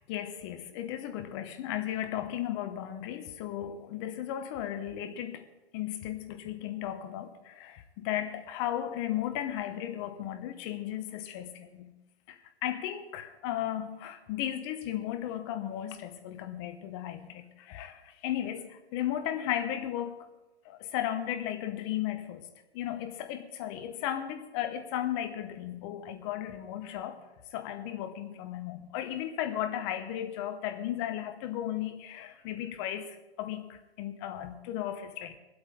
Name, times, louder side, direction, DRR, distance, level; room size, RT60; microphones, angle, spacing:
voice 1, 0.0-5.4 5.7-11.9 12.3-20.2 20.6-22.5 22.7-27.2 27.5-35.4, left 11 dB, 25° left, 1.0 m, -35 dB
21.5 x 8.1 x 5.2 m
hypercardioid pair, 150°, 33 cm